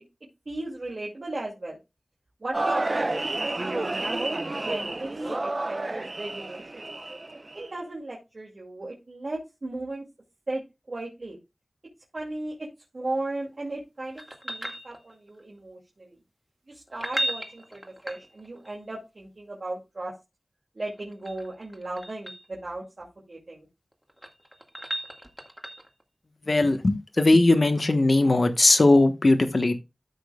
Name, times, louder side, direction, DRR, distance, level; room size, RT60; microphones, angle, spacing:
voice 1, 0.5-1.8 2.4-6.9 7.5-10.0 10.5-10.6 10.9-11.4 12.1-12.7 12.9-16.2 16.7-20.1 20.7-23.7, right 2 dB, 65° right, 2.5 m, -36 dB
sound 1, 2.5-7.7, right 2 dB, 45° right, 0.8 m, -30 dB
sound 2, 14.2-15.4 16.9-18.7 20.9-22.5 23.9-26.0 28.8-28.9, right 1 dB, 5° right, 1.9 m, -36 dB
voice 2, 26.5-29.8, left 2 dB, 55° left, 1.2 m, -19 dB
13.5 x 6.2 x 2.3 m
wide cardioid pair, 65°, 0 cm